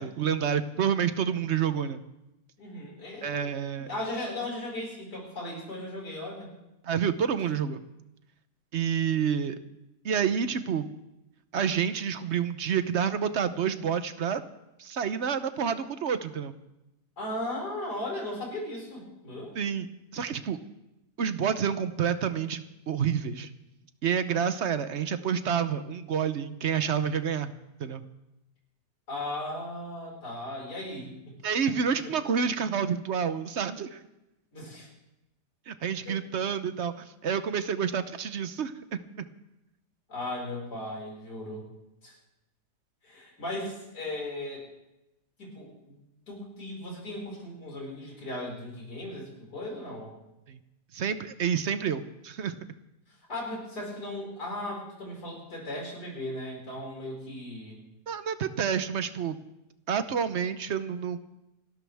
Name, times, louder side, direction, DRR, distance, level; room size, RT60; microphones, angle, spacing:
voice 1, 0.0-2.0 3.2-3.9 6.8-7.8 8.7-9.6 10.0-10.9 11.5-14.4 14.8-16.5 19.6-19.9 20.1-20.6 21.2-23.5 24.0-27.5 27.8-28.0 31.4-34.0 35.7-39.3 50.5-50.6 50.9-52.6 58.1-59.4 59.9-61.2, right 7 dB, 55° right, 11 dB, 0.9 m, -29 dB
voice 2, 2.6-3.5 3.8-6.5 17.2-19.5 29.1-31.4 31.9-32.1 34.5-34.9 36.1-36.2 40.1-41.7 42.0-42.1 43.0-44.6 45.4-46.0 46.3-50.1 53.3-57.8, left 1 dB, 75° left, -2 dB, 5.9 m, -37 dB
28.0 x 12.5 x 3.5 m, 0.93 s
omnidirectional pair, 1.8 m